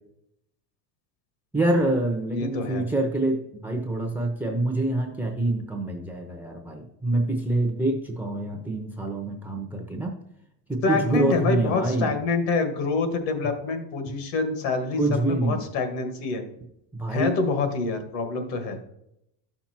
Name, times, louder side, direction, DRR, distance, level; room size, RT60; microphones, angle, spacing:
voice 1, 1.5-10.1 10.7-12.1 15.0-15.6 16.9-17.4, right 2 dB, 5° right, 3 dB, 0.7 m, -26 dB
voice 2, 2.3-2.9 10.8-16.4 17.1-18.8, left 4 dB, 60° left, 6 dB, 1.9 m, -26 dB
12.0 x 5.9 x 4.3 m, 0.81 s
cardioid pair, 155°, 48 cm